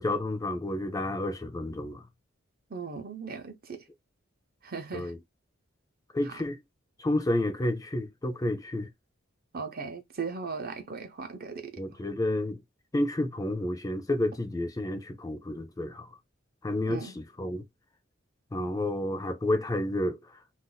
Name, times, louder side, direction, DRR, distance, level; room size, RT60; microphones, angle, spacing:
voice 1, 0.0-2.0 4.9-5.2 6.1-6.6 7.0-8.9 11.8-12.6 12.9-16.1 16.6-17.6 18.5-20.2, left 1 dB, 20° left, 0.4 m, -30 dB
voice 2, 2.7-3.8 4.6-5.1 9.5-11.7 16.9-17.1, right 5 dB, 50° right, 0.7 m, -37 dB
2.5 x 2.3 x 3.9 m
head